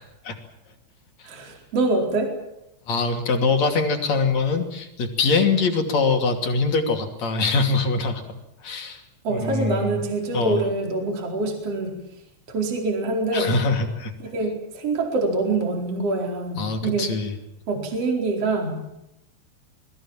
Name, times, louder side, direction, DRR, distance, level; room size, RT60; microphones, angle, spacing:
voice 1, 1.2-2.3 9.2-12.0 12.5-13.5 14.2-17.1 17.7-18.8, right 2 dB, 30° right, 2 dB, 5.1 m, -25 dB
voice 2, 2.9-9.0 9.3-10.0 10.3-10.6 13.3-14.1 16.6-17.3, left 4 dB, 40° left, 4 dB, 3.4 m, -23 dB
28.0 x 21.5 x 7.5 m, 0.83 s
omnidirectional pair, 5.7 m